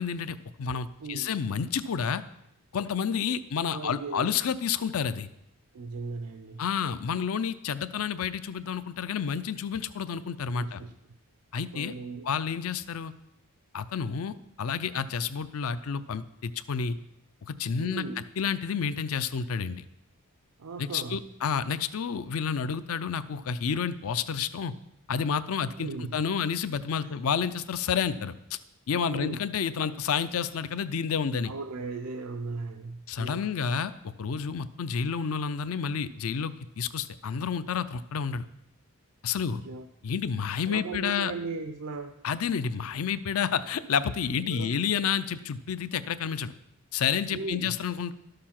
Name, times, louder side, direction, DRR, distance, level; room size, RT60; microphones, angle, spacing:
voice 1, 0.0-2.2 2.7-5.3 6.6-10.8 11.5-11.9 12.2-13.1 13.7-17.0 17.4-18.0 18.4-19.9 20.8-24.7 25.1-28.3 28.9-31.5 33.1-38.5 39.2-39.6 40.0-41.3 42.2-46.5 46.9-48.1, left 7 dB, 70° left, 14 dB, 0.5 m, -30 dB
voice 2, 1.0-1.3 3.7-4.4 5.7-6.6 10.6-10.9 11.7-12.3 17.8-18.3 20.6-21.2 25.8-26.2 27.0-27.1 29.1-29.4 31.4-33.5 39.5-39.9 40.7-42.2 44.5-44.7 47.3-47.7, right 4 dB, 85° right, 7 dB, 0.6 m, -37 dB
12.5 x 6.7 x 5.8 m, 0.83 s
head